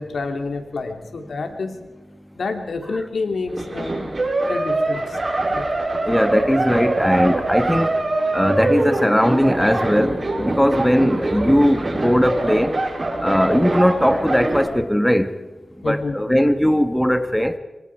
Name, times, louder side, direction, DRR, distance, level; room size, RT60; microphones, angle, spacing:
voice 1, 0.0-1.8 2.3-4.1 4.5-5.2 5.5-5.7 15.8-16.2, left 3 dB, 75° left, 5 dB, 2.9 m, -28 dB
sound 1, 3.5-14.7, right 2 dB, 40° right, 6.4 m, -24 dB
voice 2, 6.0-8.0 8.3-12.7 13.2-15.3 15.8-17.6, equal, 5° left, 9 dB, 1.6 m, -19 dB
24.5 x 24.0 x 4.8 m, 1.2 s
cardioid pair, 65°, 0 cm